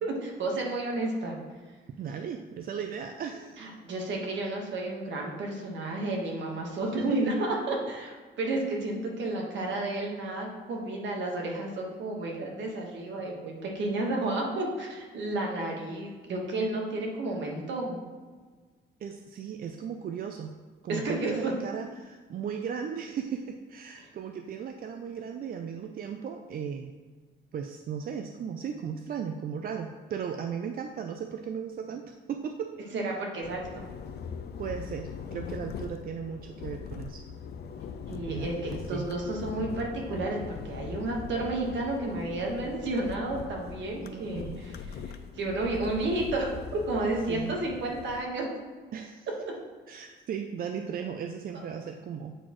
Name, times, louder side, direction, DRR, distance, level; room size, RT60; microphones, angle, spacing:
voice 1, 0.0-1.3 2.1-2.2 3.6-18.0 20.9-21.5 32.9-33.8 38.1-48.5, right 2 dB, 70° right, 0 dB, 1.3 m, -32 dB
voice 2, 2.0-3.7 7.0-7.1 19.0-20.6 20.8-26.9 27.5-32.9 34.6-37.2 38.3-39.1 40.9-41.0 44.0-44.6 47.3-47.6 48.9-49.3 49.9-52.4, right 7 dB, 45° right, 4 dB, 0.4 m, -36 dB
sound 1, 33.4-48.2, left 6 dB, 55° left, 0.4 m, -41 dB
7.9 x 4.1 x 3.0 m, 1.4 s
cardioid pair, 90°, 20 cm